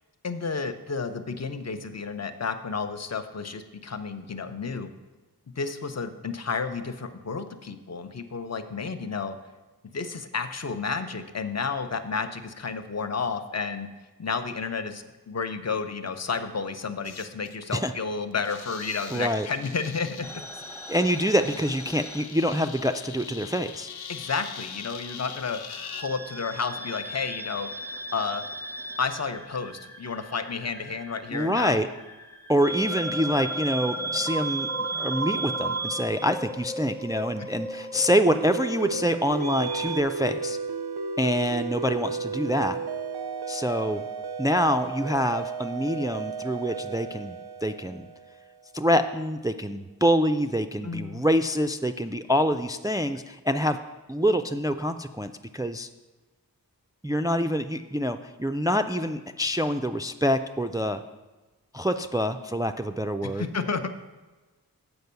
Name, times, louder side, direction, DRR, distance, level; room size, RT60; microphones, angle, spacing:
voice 1, 0.2-4.9 5.6-9.3 9.9-13.9 14.2-20.4 24.1-27.7 28.1-28.4 29.0-31.8 37.4-37.5 50.8-51.3 63.2-63.9, left 5 dB, 45° left, 9 dB, 0.7 m, -31 dB
sound 1, 16.3-16.4 17.0-17.8 18.3-26.1, left 7 dB, 85° left, 0.5 m, -42 dB
voice 2, 19.1-19.5 20.9-23.9 31.3-31.9 32.5-34.7 35.0-40.6 41.2-42.8 43.5-44.0 44.4-48.1 48.7-53.8 54.1-55.9 57.0-61.0 61.7-63.4, equal, 10° right, 8 dB, 0.3 m, -26 dB
sound 2, 20.2-23.1 23.3-24.5 25.7-40.0, right 2 dB, 5° left, 0.8 m, -35 dB
sound 3, 38.2-48.6, right 5 dB, 80° right, 0.5 m, -34 dB
7.9 x 5.2 x 6.8 m, 1.2 s
wide cardioid pair, 55°, 38 cm